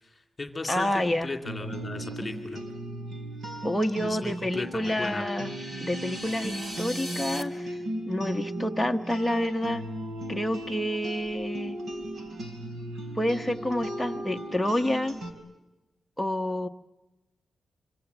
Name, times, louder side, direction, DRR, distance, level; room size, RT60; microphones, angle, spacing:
voice 1, 0.0-2.6 4.0-5.2, left 3 dB, 20° left, 4 dB, 2.5 m, -36 dB
voice 2, 0.7-1.3 3.6-5.5 5.8-7.8 8.1-9.8 10.3-11.8 13.2-15.2 16.2-16.7, left 1 dB, 5° left, 4 dB, 1.0 m, -28 dB
sound 1, 1.4-15.3, right 1 dB, 65° right, 4.3 m, -36 dB
sound 2, 4.7-7.4, equal, 25° right, 2.5 m, -39 dB
26.5 x 25.5 x 8.0 m, 1.1 s
wide cardioid pair, 165°, 0 cm